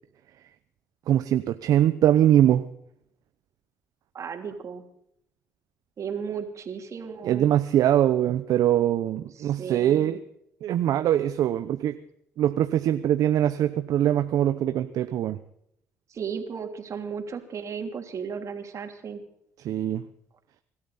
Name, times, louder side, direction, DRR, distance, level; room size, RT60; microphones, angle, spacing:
voice 1, 1.1-2.7 7.2-10.2 10.6-12.0 12.4-15.4 19.6-20.0, right 11 dB, 70° right, 9 dB, 0.9 m, -22 dB
voice 2, 4.1-4.8 6.0-7.5 9.4-10.2 16.1-19.2, right 6 dB, 55° right, 4 dB, 3.2 m, -35 dB
25.5 x 13.0 x 4.2 m, 0.74 s
supercardioid pair, 60°, 6 cm